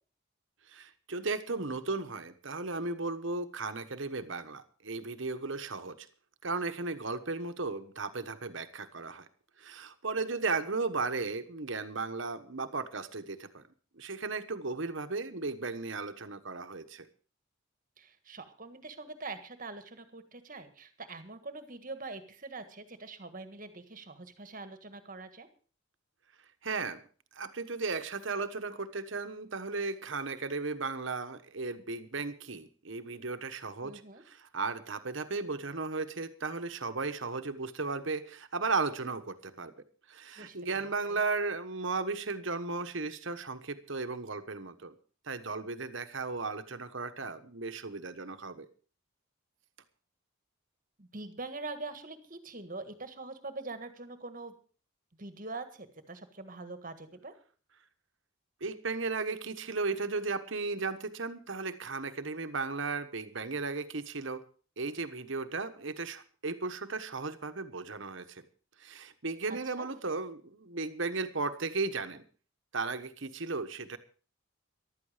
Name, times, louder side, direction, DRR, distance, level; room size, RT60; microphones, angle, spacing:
voice 1, 0.7-6.1 6.4-9.3 9.6-13.6 13.9-17.1 26.6-27.0 27.3-39.7 40.1-44.9 45.3-48.7 58.6-64.4 64.8-68.4 68.8-72.2 72.7-74.0, right 3 dB, 65° right, 10 dB, 1.2 m, -35 dB
voice 2, 18.0-25.5 33.8-34.2 40.4-41.2 51.0-54.5 55.2-57.3 69.5-69.9, right 3 dB, 40° right, 9 dB, 1.6 m, -44 dB
14.5 x 12.0 x 5.0 m, 0.40 s
head